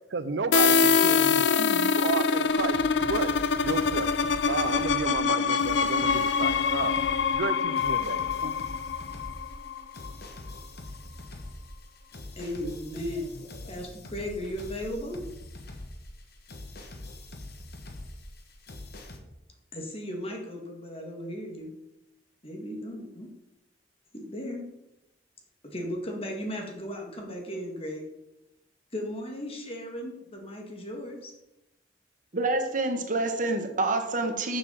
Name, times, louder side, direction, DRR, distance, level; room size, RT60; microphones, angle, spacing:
voice 1, 0.1-3.3 3.6-4.1 4.5-6.9 7.3-8.5, right 4 dB, 75° right, 13 dB, 0.6 m, -32 dB
sound 1, 0.5-10.1, left 5 dB, 80° left, 0.5 m, -25 dB
sound 2, 2.5-19.2, left 1 dB, 60° left, 1.4 m, -43 dB
voice 2, 12.4-13.3 13.7-15.2 19.7-21.7 22.4-23.3 24.1-24.6 25.6-28.0 28.9-31.3, equal, 35° left, 1 dB, 2.2 m, -36 dB
voice 3, 32.3-34.6, right 2 dB, 50° right, 5 dB, 1.4 m, -27 dB
7.3 x 6.8 x 7.2 m, 0.91 s
head